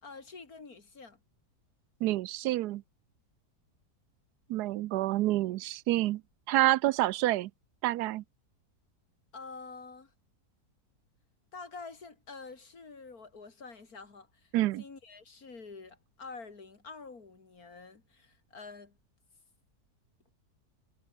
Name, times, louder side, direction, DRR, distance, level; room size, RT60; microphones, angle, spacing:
voice 1, 0.0-1.2 9.3-10.1 11.5-14.5 14.8-19.0, left 4 dB, 65° left, 3.4 m, -47 dB
voice 2, 2.0-2.8 4.5-6.2 6.5-7.5 7.8-8.2 14.5-14.8, right 16 dB, 85° right, 1.1 m, -28 dB
omnidirectional pair, 1.7 m